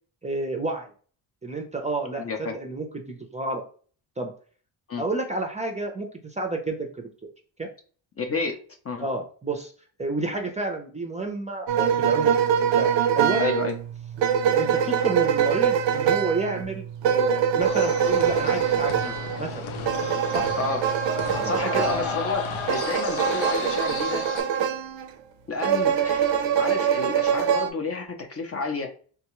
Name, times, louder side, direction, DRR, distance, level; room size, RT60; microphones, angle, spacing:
voice 1, 0.2-0.9 1.4-3.6 4.2-4.3 5.0-7.1 7.6-7.7 9.0-9.7 10.0-13.6 14.4-19.1 19.4-19.6 20.3-20.5 21.4-21.5, right 3 dB, 15° right, 2 dB, 0.5 m, -30 dB
voice 2, 2.2-2.6 4.9-5.0 8.2-8.6 8.8-9.1 13.4-13.7 20.6-20.9 21.4-24.3 25.5-28.9, left 4 dB, 30° left, 5 dB, 0.5 m, -30 dB
sound 1, 11.7-25.1 25.6-27.7, right 8 dB, 70° right, 0.6 m, -24 dB
sound 2, 17.6-24.4, left 6 dB, 80° left, 0.7 m, -34 dB
3.5 x 2.3 x 3.0 m, 0.42 s
cardioid pair, 95°, 46 cm